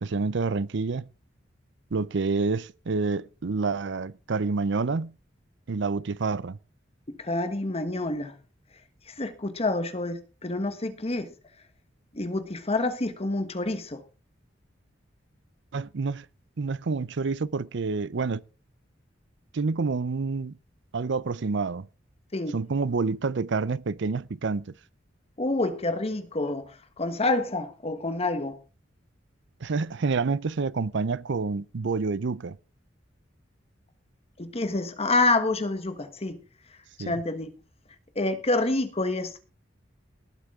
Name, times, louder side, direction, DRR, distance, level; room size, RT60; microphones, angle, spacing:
voice 1, 0.0-1.1 1.9-5.1 5.7-6.6 15.7-16.3 16.6-18.4 19.5-20.6 20.9-21.9 22.5-24.7 29.6-32.6 37.0-37.2, right 4 dB, 65° right, 0.6 m, -28 dB
voice 2, 7.2-8.3 9.1-11.3 12.1-14.0 22.3-22.6 25.4-26.7 27.0-28.6 34.4-36.4 37.0-37.5 38.1-39.4, left 2 dB, 35° left, 1.2 m, -27 dB
19.0 x 8.2 x 3.6 m
head